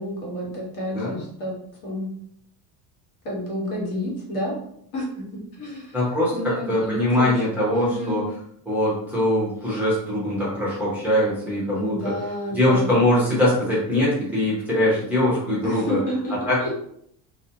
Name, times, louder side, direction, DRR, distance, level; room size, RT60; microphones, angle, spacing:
voice 1, 0.0-1.6 1.8-2.1 3.2-4.7 4.9-5.9 6.3-7.3 7.7-8.2 11.7-12.9 15.6-16.7, equal, 55° left, -3 dB, 1.1 m, -30 dB
voice 2, 5.9-8.2 8.7-12.1 12.5-16.0 16.5-16.7, left 1 dB, 5° right, -8 dB, 0.7 m, -22 dB
2.5 x 2.2 x 2.7 m, 0.69 s
cardioid pair, 155°, 39 cm